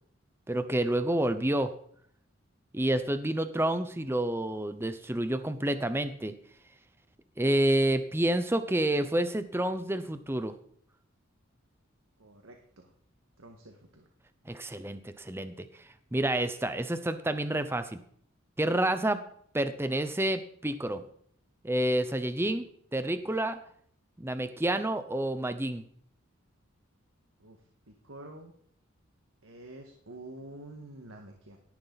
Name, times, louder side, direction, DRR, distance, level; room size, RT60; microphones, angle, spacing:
voice 1, 0.5-1.7 2.7-6.3 7.4-10.5 14.5-15.7 16.1-18.0 18.6-19.2 19.5-21.0 21.6-22.7 22.9-23.6 24.2-25.8, right 1 dB, 10° right, 10 dB, 0.7 m, -29 dB
voice 2, 12.2-12.9 13.4-14.1 27.4-27.6 27.9-28.5 29.4-31.6, right 1 dB, 80° right, 3 dB, 1.7 m, -48 dB
17.5 x 11.5 x 4.1 m, 0.63 s
head